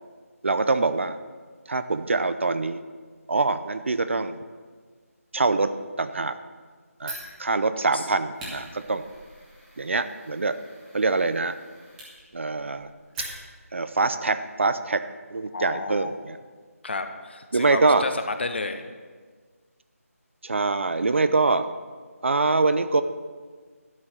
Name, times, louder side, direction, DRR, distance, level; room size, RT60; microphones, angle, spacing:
voice 1, 0.4-1.2 1.7-2.8 3.3-4.4 5.3-5.7 6.0-6.4 7.0-9.0 9.8-10.6 10.9-11.6 12.3-12.9 13.7-15.0 15.3-16.4 17.5-18.0 20.4-21.7 22.2-23.0, right 3 dB, 50° right, 11 dB, 0.6 m, -24 dB
Fire, 7.0-13.8, right 1 dB, 5° right, 1.8 m, -43 dB
voice 2, 15.5-16.2 16.8-18.8, left 3 dB, 45° left, 8 dB, 1.0 m, -31 dB
12.5 x 6.4 x 7.4 m, 1.5 s
figure-of-eight pair, 165°, 8 cm